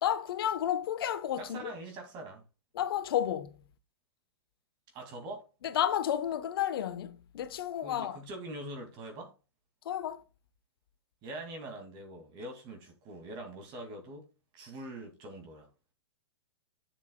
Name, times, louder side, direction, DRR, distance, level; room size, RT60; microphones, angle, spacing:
voice 1, 0.0-1.7 2.7-3.5 5.6-8.2 9.8-10.2, left 10 dB, 60° left, 1.0 m, -31 dB
voice 2, 1.4-2.4 4.9-5.5 7.8-9.3 11.2-14.3 14.5-15.7, right 1 dB, 35° right, 2.2 m, -43 dB
11.0 x 7.1 x 2.2 m
hypercardioid pair, 120°, 13 cm